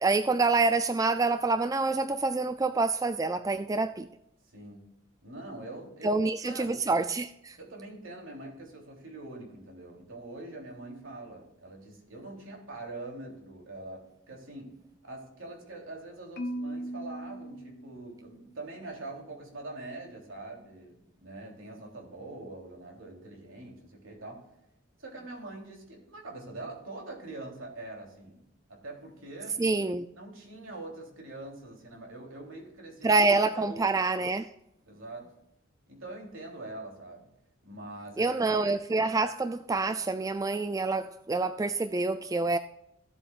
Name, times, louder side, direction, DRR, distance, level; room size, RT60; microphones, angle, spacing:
voice 1, 0.0-4.1 6.0-7.6 29.6-30.1 33.0-34.5 38.2-42.6, right 3 dB, 15° right, 0.3 m, -27 dB
voice 2, 4.5-5.0 5.2-6.8 7.6-24.5 25.0-29.6 30.1-33.2 33.6-33.9 34.9-35.4 35.9-37.3 37.6-38.6, right 2 dB, 70° right, 3.3 m, -44 dB
Marimba xylophone, 16.4-18.5, right 1 dB, 45° left, 0.9 m, -38 dB
15.5 x 7.9 x 2.5 m
head